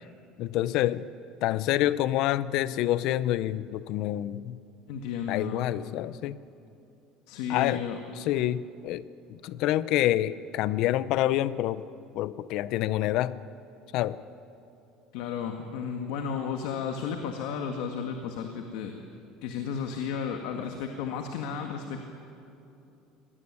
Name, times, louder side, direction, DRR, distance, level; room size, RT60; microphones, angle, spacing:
voice 1, 0.4-1.1 1.4-4.6 5.3-6.4 7.5-7.8 8.3-11.9 12.1-13.4 13.9-14.2, left 14 dB, 50° left, 17 dB, 0.6 m, -27 dB
voice 2, 4.9-5.7 7.3-8.0 15.1-18.9 19.4-22.1, left 7 dB, 70° left, 4 dB, 1.8 m, -33 dB
24.0 x 18.5 x 9.8 m, 2.8 s
cardioid pair, 165°, 0 cm